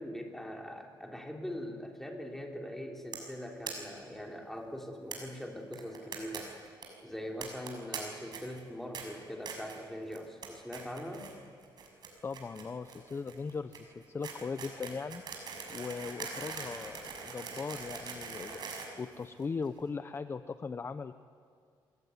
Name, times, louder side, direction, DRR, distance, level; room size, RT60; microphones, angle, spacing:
voice 1, 0.0-6.5 7.0-11.3, equal, 5° left, 1 dB, 3.5 m, -42 dB
sound 1, 3.1-3.3 3.6-3.7 4.0-4.1 4.3-4.4 5.1-5.2 5.7-6.4 6.6-6.8 7.4-8.0 8.3-8.6 8.9-9.0 9.4-9.8 10.1-10.5 10.7-11.3 11.6-19.7, right 6 dB, 55° right, 6.4 m, -42 dB
voice 2, 12.2-15.2 15.7-18.6 19.0-21.1, left 5 dB, 30° left, 11 dB, 0.8 m, -39 dB
27.0 x 20.5 x 9.6 m, 2.2 s
cardioid pair, 125°, 8 cm